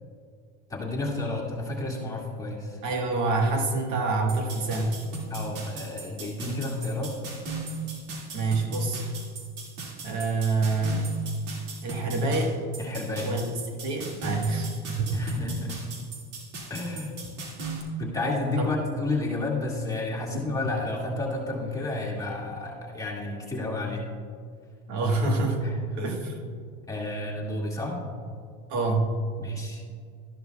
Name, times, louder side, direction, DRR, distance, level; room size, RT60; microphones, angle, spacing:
voice 1, 0.7-2.8 5.3-7.2 12.8-13.3 14.2-14.4 15.1-15.8 16.7-17.2 18.0-24.0 25.6-25.8 26.2-26.3 26.9-28.0 29.4-29.8, left 2 dB, 10° left, -4 dB, 2.0 m, -31 dB
voice 2, 2.8-5.0 8.3-9.0 10.0-11.1 11.8-12.5 13.2-13.5 13.8-15.4 18.6-18.7 24.9-25.6 26.0-26.4 28.7-29.1, right 3 dB, 55° right, 2 dB, 1.5 m, -26 dB
sound 1, 4.3-17.8, right 4 dB, 85° right, 2.3 m, -37 dB
12.5 x 11.0 x 2.3 m, 2.2 s
supercardioid pair, 110°, 35 cm